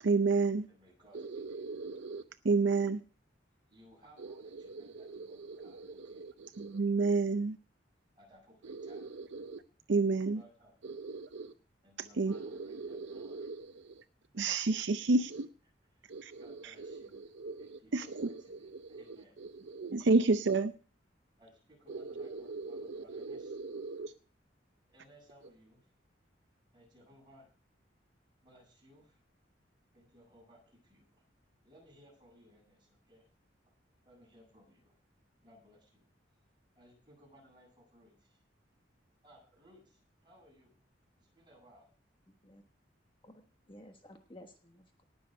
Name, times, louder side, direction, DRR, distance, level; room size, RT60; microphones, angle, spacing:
voice 1, 0.0-0.7 1.1-3.0 4.2-7.6 8.6-9.6 9.9-10.4 10.8-11.5 12.2-14.0 14.3-15.5 16.1-20.7 21.9-24.1, right 3 dB, 70° right, 0.6 m, -33 dB
voice 2, 0.7-1.7 3.7-6.3 8.1-9.0 10.3-11.0 11.8-13.5 15.9-17.3 17.6-18.3 18.6-19.4 21.4-23.5 24.9-25.9 26.7-27.5 28.4-29.2 29.9-31.2 31.6-33.3 34.0-35.0 35.4-36.1 36.8-38.4 39.2-40.7 41.1-41.9, equal, 25° right, 8.0 m, -61 dB
voice 3, 42.3-42.6 43.2-45.0, left 1 dB, 25° left, 1.3 m, -55 dB
18.5 x 6.9 x 5.2 m
head